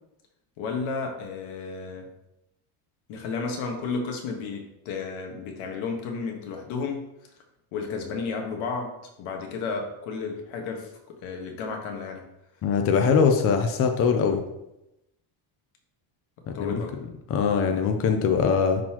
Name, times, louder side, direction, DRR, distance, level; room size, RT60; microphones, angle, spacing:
voice 1, 0.6-2.1 3.1-7.0 7.7-12.2 16.5-17.0, left 4 dB, 90° left, 3 dB, 1.5 m, -32 dB
voice 2, 12.6-14.4 16.6-16.7 17.3-18.8, left 6 dB, 30° left, 5 dB, 0.5 m, -22 dB
10.5 x 4.1 x 3.0 m, 0.89 s
cardioid pair, 175°, 47 cm